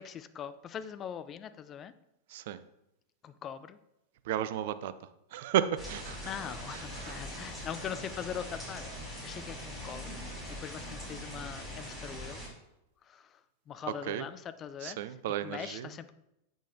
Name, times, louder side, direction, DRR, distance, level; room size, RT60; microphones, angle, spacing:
voice 1, 0.0-1.9 3.2-3.8 6.2-12.4 13.0-15.1 15.4-16.1, left 8 dB, 30° left, 13 dB, 0.4 m, -42 dB
voice 2, 2.3-2.6 4.3-4.9 5.3-6.3 7.0-7.2 14.0-14.3 14.8-15.9, right 11 dB, 55° right, 13 dB, 0.4 m, -33 dB
sound 1, 5.8-12.5, equal, ahead, 2.7 m, -42 dB
8.1 x 6.2 x 2.6 m, 0.86 s
figure-of-eight pair, 90°, 0 cm